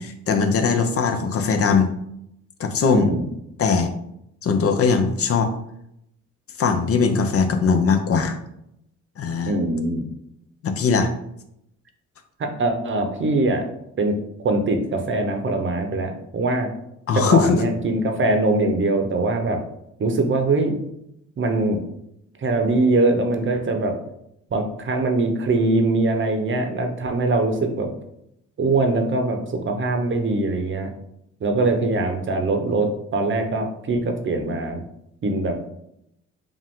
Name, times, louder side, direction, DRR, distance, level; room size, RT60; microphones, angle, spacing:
voice 1, 0.0-1.9 2.6-3.1 3.6-3.9 4.4-5.5 6.6-8.4 9.2-9.5 10.6-11.1 17.1-17.5, left 5 dB, 50° left, 7 dB, 0.6 m, -20 dB
voice 2, 2.9-3.3 9.5-10.1 12.4-13.6 14.0-14.1 14.4-16.7 17.1-19.6 20.0-20.7 21.4-21.8 22.4-23.9 24.5-27.9 28.6-30.9 31.4-34.8 35.2-35.6, right 2 dB, 40° right, 5 dB, 0.8 m, -22 dB
5.0 x 2.5 x 3.6 m, 0.77 s
cardioid pair, 90°, 30 cm